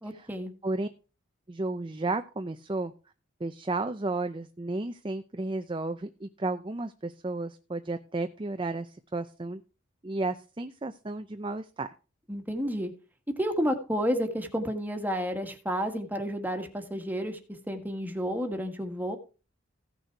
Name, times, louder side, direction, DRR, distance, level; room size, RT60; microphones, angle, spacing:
voice 1, 0.0-0.5 12.3-12.9 13.4-17.4 17.7-19.2, equal, 10° right, 5 dB, 1.6 m, -31 dB
voice 2, 1.5-2.9 3.4-9.6 10.0-11.9, right 2 dB, 25° right, 8 dB, 0.6 m, -33 dB
15.5 x 6.5 x 4.6 m, 0.34 s
head